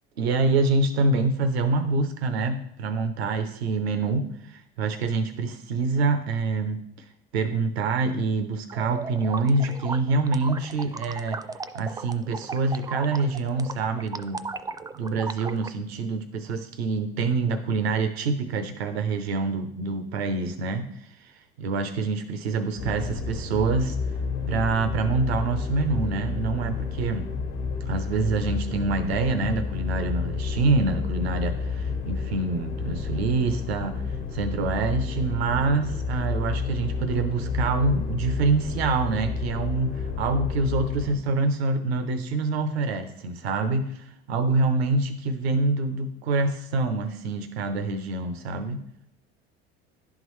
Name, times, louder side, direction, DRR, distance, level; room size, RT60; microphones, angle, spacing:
voice 1, 0.2-6.8 7.3-11.4 11.7-14.5 15.0-21.3 21.6-24.0 24.5-27.3 27.9-34.0 34.3-48.8, right 3 dB, 90° right, 8 dB, 0.7 m, -26 dB
sound 1, 8.7-15.7, right 4 dB, 10° right, 0.4 m, -36 dB
sound 2, 22.8-41.2, left 5 dB, 85° left, 1.2 m, -30 dB
11.0 x 3.7 x 3.1 m, 0.72 s
hypercardioid pair, 80°, 30 cm